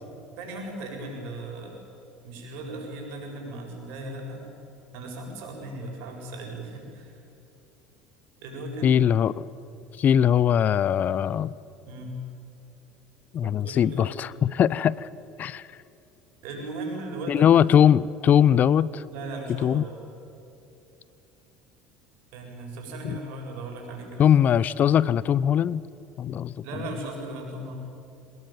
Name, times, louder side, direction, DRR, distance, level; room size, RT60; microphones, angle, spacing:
voice 1, 0.4-1.7 2.2-4.5 4.9-7.2 8.4-9.0 11.8-12.2 13.4-14.1 16.4-17.5 19.1-20.0 22.3-24.3 26.6-27.7, right 2 dB, 70° right, 1 dB, 7.5 m, -37 dB
voice 2, 8.8-9.4 10.0-11.5 13.3-15.1 15.4-15.7 17.3-19.0 19.6-19.9 23.0-23.2 24.2-25.8 26.2-26.9, left 9 dB, 45° left, 21 dB, 0.6 m, -21 dB
25.5 x 19.5 x 9.2 m, 2.8 s
hypercardioid pair, 80°, 4 cm